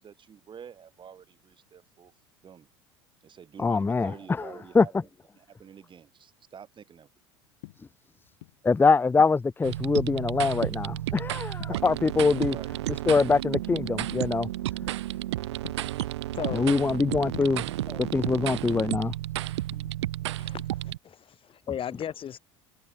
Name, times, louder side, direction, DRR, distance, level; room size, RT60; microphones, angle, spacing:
voice 1, 0.0-2.1 2.4-2.7 3.2-4.9 5.3-7.1 11.7-11.8 12.4-12.7, right 8 dB, 30° right, 5.7 m, -47 dB
voice 2, 3.6-4.9 8.6-12.5 13.1-14.5 16.5-19.1, left 4 dB, 15° left, 0.7 m, -24 dB
sound 1, 7.4-8.7 9.1-10.4 10.8-11.2 11.6-12.7 13.0-13.6 14.0-14.3 14.8-15.0 15.4-17.0 17.3-18.5 18.8-20.3 20.6-20.9, left 18 dB, 65° left, 7.2 m, -46 dB
sound 2, 9.6-21.0, right 15 dB, 70° right, 0.8 m, -32 dB
voice 3, 16.3-16.6 20.4-22.4, left 9 dB, 35° left, 3.8 m, -36 dB
figure-of-eight pair, 70°, 15 cm